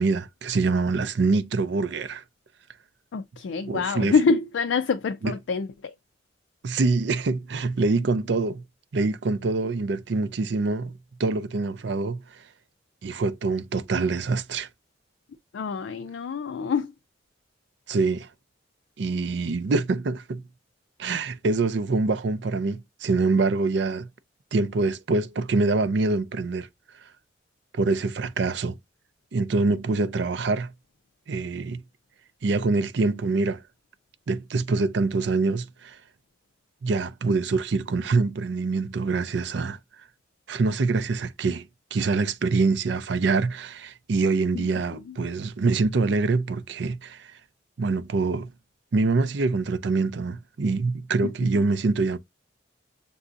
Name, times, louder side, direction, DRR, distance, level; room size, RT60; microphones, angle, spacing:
voice 1, 0.0-2.2 3.7-4.1 5.2-5.3 6.6-8.6 8.9-12.4 13.0-14.7 17.9-18.3 19.0-20.4 21.0-24.1 24.5-26.7 27.7-28.8 29.3-30.7 31.3-31.8 32.4-33.6 34.3-36.0 36.8-39.8 40.5-47.3 47.8-48.5 48.9-52.2, right 3 dB, 65° right, 0.5 m, -25 dB
voice 2, 3.1-5.9 15.5-16.9 44.5-45.2 51.2-51.6, left 5 dB, 75° left, 0.4 m, -26 dB
6.8 x 2.6 x 2.5 m
head